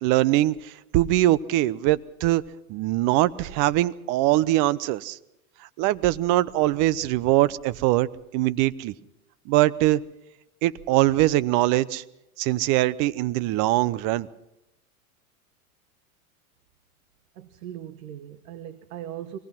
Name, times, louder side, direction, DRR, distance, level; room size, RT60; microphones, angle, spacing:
voice 1, 0.0-2.4 2.7-5.2 5.8-8.1 8.3-8.9 9.5-10.0 10.6-12.0 12.4-14.3, right 16 dB, 45° right, 19 dB, 0.9 m, -22 dB
voice 2, 17.3-19.4, right 11 dB, 70° right, 12 dB, 1.3 m, -39 dB
23.5 x 18.5 x 6.0 m, 0.89 s
hypercardioid pair, 105°, 43 cm